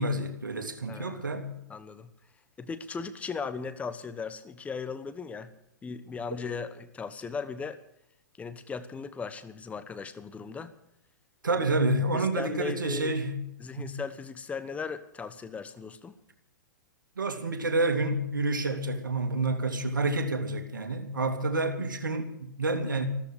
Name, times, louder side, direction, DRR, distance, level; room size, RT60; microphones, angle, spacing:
voice 1, 0.0-1.5 11.4-13.4 13.8-13.9 17.2-23.1, right 2 dB, 85° right, 7 dB, 2.5 m, -29 dB
voice 2, 0.9-1.4 1.7-2.1 2.6-5.5 5.8-7.8 8.4-10.7 11.5-11.6 12.1-13.2 13.6-16.1, left 5 dB, 15° left, 11 dB, 1.1 m, -37 dB
14.5 x 14.0 x 6.4 m, 0.80 s
hypercardioid pair, 115°, 10 cm